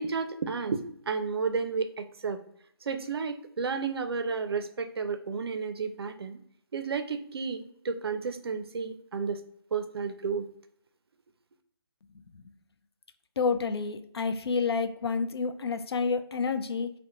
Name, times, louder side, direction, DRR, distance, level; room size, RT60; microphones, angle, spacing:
voice 1, 0.0-2.4 2.9-6.4 6.7-9.4 9.7-10.5, right 5 dB, 75° right, 7 dB, 0.5 m, -32 dB
voice 2, 13.4-16.9, left 5 dB, 80° left, 9 dB, 0.4 m, -29 dB
2.8 x 2.1 x 3.6 m, 0.69 s
hypercardioid pair, 160°, 13 cm